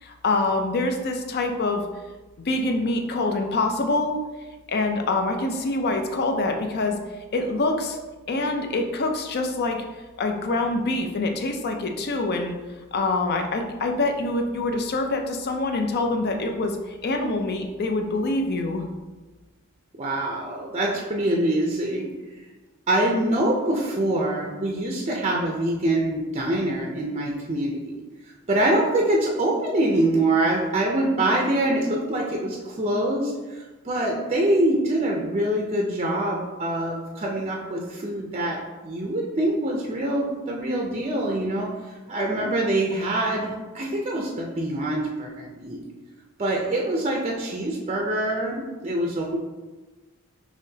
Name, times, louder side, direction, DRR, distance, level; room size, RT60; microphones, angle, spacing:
voice 1, 0.0-1.8 2.5-4.2 4.7-7.0 7.3-8.0 8.3-9.8 10.2-12.5 12.9-18.9, left 2 dB, 50° left, 4 dB, 0.5 m, -25 dB
voice 2, 20.0-22.1 22.9-27.9 28.3-38.6 38.8-41.7 42.1-45.8 46.4-49.4, right 1 dB, 30° right, -1 dB, 0.5 m, -24 dB
5.6 x 3.0 x 2.7 m, 1.2 s
head